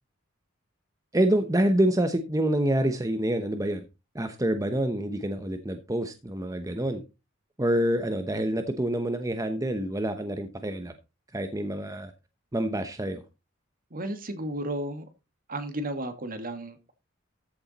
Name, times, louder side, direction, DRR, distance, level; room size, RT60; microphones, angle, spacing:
voice 1, 1.1-3.8 4.1-7.0 7.6-10.9 11.3-12.1 12.5-13.2, right 1 dB, 15° right, 0.9 m, -27 dB
voice 2, 13.9-15.0 15.5-16.9, right 1 dB, 45° right, 2.0 m, -33 dB
14.0 x 7.1 x 4.1 m
head